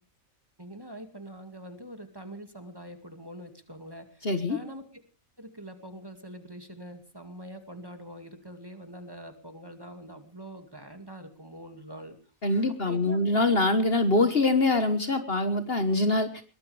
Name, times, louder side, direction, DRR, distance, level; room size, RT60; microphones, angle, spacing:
voice 1, 0.6-5.0 5.4-12.2 12.8-13.3, equal, 15° right, 6 dB, 2.2 m, -44 dB
voice 2, 4.2-4.6 12.4-16.4, left 2 dB, 45° left, 8 dB, 1.6 m, -24 dB
22.0 x 19.0 x 3.4 m, 0.37 s
omnidirectional pair, 1.4 m